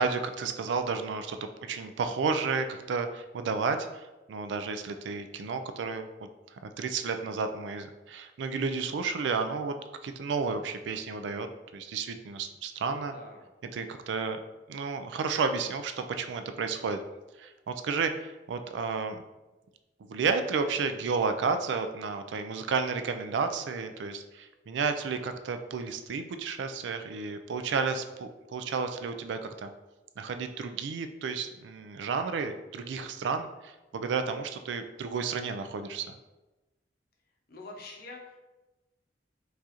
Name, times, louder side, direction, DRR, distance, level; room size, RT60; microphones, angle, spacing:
voice 1, 0.0-6.1 6.6-9.7 10.0-13.1 13.7-14.4 14.7-17.0 17.4-19.2 20.0-29.7 30.2-36.1, right 5 dB, 80° right, 8 dB, 0.3 m, -32 dB
voice 2, 13.1-13.4 37.5-38.5, left 2 dB, 55° left, 2 dB, 0.6 m, -45 dB
4.6 x 2.5 x 2.8 m, 1.1 s
head